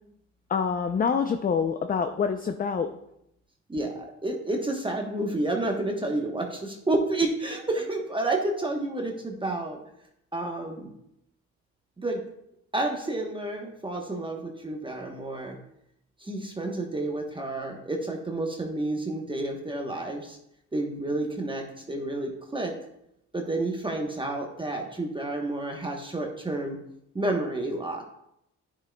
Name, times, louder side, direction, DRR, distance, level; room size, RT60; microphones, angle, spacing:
voice 1, 0.5-2.9, left 6 dB, 30° left, 7 dB, 0.5 m, -26 dB
voice 2, 3.7-9.8 10.3-10.9 12.0-12.2 12.7-15.6 16.2-20.4 20.7-22.7 23.3-26.8 27.1-28.0, right 2 dB, 15° right, 1 dB, 1.0 m, -30 dB
10.5 x 6.3 x 2.2 m, 0.78 s
cardioid pair, 90°, 30 cm